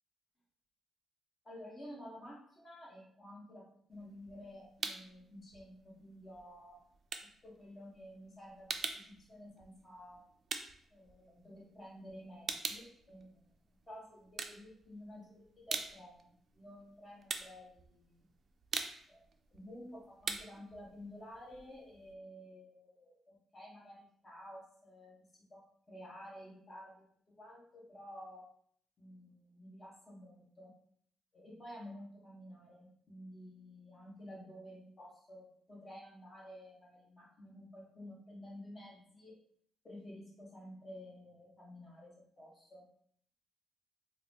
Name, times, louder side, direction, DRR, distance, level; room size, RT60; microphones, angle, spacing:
voice 1, 1.4-6.8 7.4-10.2 10.9-13.5 13.8-18.3 19.1-19.2 19.5-25.6 25.9-27.1 27.4-28.4 29.0-30.7 31.3-39.4 39.8-42.9, equal, 30° left, -3 dB, 1.2 m, -52 dB
sound 1, 3.9-5.2 5.5-11.7 12.1-13.8 14.2-15.1 15.4-22.1, right 5 dB, 50° right, 0.3 m, -43 dB
3.9 x 2.1 x 2.8 m, 0.62 s
cardioid pair, 90°, 0 cm